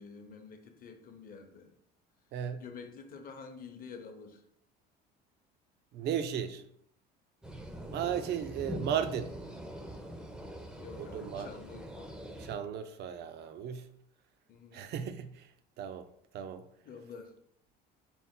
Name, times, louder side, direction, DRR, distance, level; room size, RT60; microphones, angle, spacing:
voice 1, 0.0-1.7 2.6-4.4 10.8-12.2 14.5-14.9 16.8-17.3, left 5 dB, 45° left, 5 dB, 0.7 m, -48 dB
voice 2, 2.3-2.6 5.9-6.6 7.9-9.3 11.0-11.5 12.4-13.9 14.7-15.5 15.8-16.1 16.3-16.6, right 8 dB, 55° right, 10 dB, 0.4 m, -35 dB
sound 1, 7.4-12.6, equal, 5° right, 0.5 m, -43 dB
4.2 x 2.1 x 3.6 m, 0.68 s
supercardioid pair, 95°, 21 cm